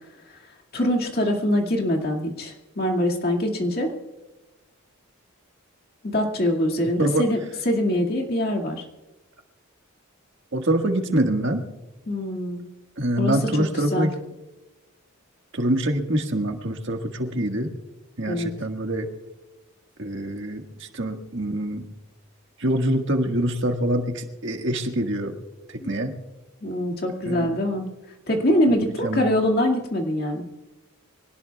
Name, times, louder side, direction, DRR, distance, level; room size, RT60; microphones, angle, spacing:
voice 1, 0.7-3.9 6.0-7.4 7.7-8.8 12.1-12.6 13.2-14.1 18.3-18.5 25.8-25.9 26.6-27.8 28.3-30.4, left 1 dB, 45° left, 1 dB, 2.1 m, -24 dB
voice 2, 10.5-11.6 13.0-14.1 15.5-17.7 18.2-19.1 20.0-21.8 22.6-25.3 25.7-26.1 27.2-27.5 28.8-29.2, right 1 dB, 55° right, 4 dB, 1.6 m, -25 dB
24.5 x 18.0 x 2.3 m, 1.1 s
head